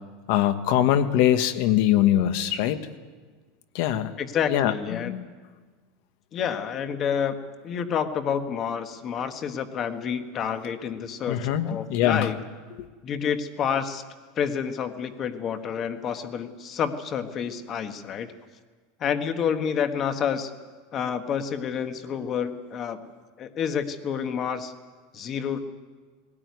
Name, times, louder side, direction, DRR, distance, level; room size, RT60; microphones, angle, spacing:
voice 1, 0.3-2.8 3.7-4.1 4.5-5.2 11.3-12.3 12.8-12.9, left 11 dB, 55° left, 10 dB, 1.3 m, -22 dB
voice 2, 4.2-5.1 6.3-7.4 7.6-12.4 13.0-14.0 14.3-18.3 19.0-20.5 20.9-23.0 23.4-24.7 25.1-25.6, left 7 dB, 25° left, 8 dB, 1.3 m, -29 dB
19.5 x 17.5 x 9.5 m, 1.5 s
supercardioid pair, 170°, 0 cm